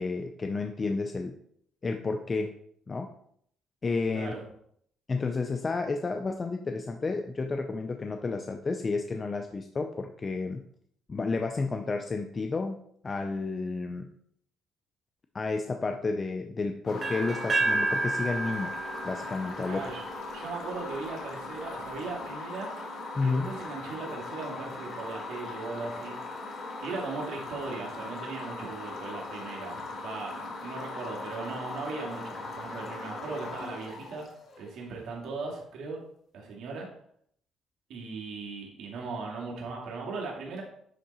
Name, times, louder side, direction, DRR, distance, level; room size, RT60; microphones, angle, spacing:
voice 1, 0.0-1.3 1.8-2.5 2.9-3.1 3.8-4.3 5.1-10.6 11.1-12.8 13.0-14.1 15.3-18.7 19.0-19.8 23.1-23.5, left 3 dB, 30° left, 5 dB, 0.6 m, -31 dB
voice 2, 4.1-4.4 19.7-20.0 20.3-22.7 23.2-26.2 26.8-34.3 34.6-36.0 36.3-36.9 37.9-40.6, right 4 dB, 75° right, -2 dB, 2.5 m, -38 dB
sound 1, 16.9-34.8, left 3 dB, 50° left, 2.0 m, -39 dB
sound 2, 17.0-20.9, right 2 dB, 35° right, 1.6 m, -31 dB
10.0 x 3.7 x 4.3 m, 0.67 s
cardioid pair, 100°, 0 cm